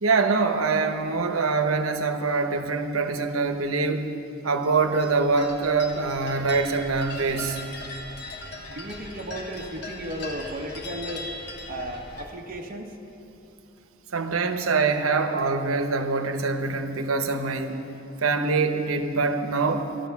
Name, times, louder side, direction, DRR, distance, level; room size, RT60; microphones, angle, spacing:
voice 1, 0.0-4.2 4.4-7.6 14.1-17.8 18.2-19.9, right 4 dB, 85° right, 7 dB, 1.0 m, -24 dB
sound 1, 4.6-12.3, left 2 dB, 55° left, 1.3 m, -39 dB
voice 2, 8.7-11.3 11.7-13.0, right 1 dB, 40° right, 0 dB, 1.0 m, -35 dB
13.0 x 11.5 x 7.1 m, 2.9 s
head